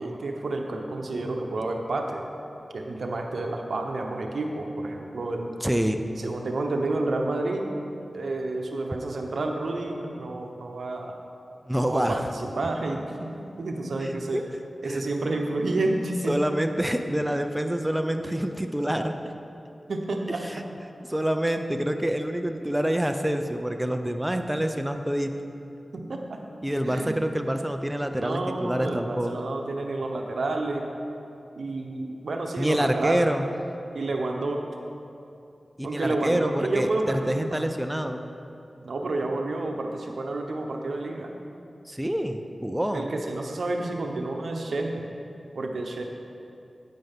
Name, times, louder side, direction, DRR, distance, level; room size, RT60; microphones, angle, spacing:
voice 1, 0.0-2.3 2.7-5.5 6.2-7.8 8.1-11.2 11.8-14.4 14.8-16.3 19.9-20.6 25.9-26.4 26.8-27.2 28.1-30.9 31.6-33.3 33.9-34.6 35.8-37.6 38.8-41.3 42.9-45.1 45.5-46.0, right 2 dB, 80° right, 2 dB, 0.8 m, -30 dB
voice 2, 5.6-6.0 11.6-12.3 14.0-14.4 14.9-15.0 16.3-19.2 20.4-20.6 21.1-25.4 26.6-29.3 32.6-33.5 35.8-38.2 41.9-43.1, right 1 dB, 10° right, 6 dB, 0.6 m, -27 dB
9.4 x 8.9 x 3.6 m, 2.7 s
cardioid pair, 45°, 0 cm